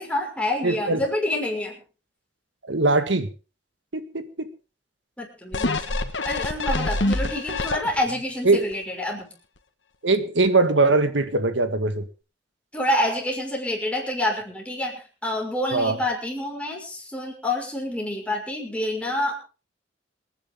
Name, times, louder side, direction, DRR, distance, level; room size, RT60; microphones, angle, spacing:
voice 1, 0.0-1.8 5.2-6.0 6.2-9.3 12.7-19.4, left 1 dB, 5° left, 0 dB, 5.9 m, -27 dB
voice 2, 0.6-1.0 2.7-3.3 3.9-4.5 8.4-8.6 10.0-12.1 15.7-16.0, right 3 dB, 85° right, 9 dB, 2.0 m, -21 dB
sound 1, 5.5-8.2 8.7-8.8, left 2 dB, 80° left, 1.8 m, -26 dB
27.0 x 10.5 x 3.9 m, 0.35 s
head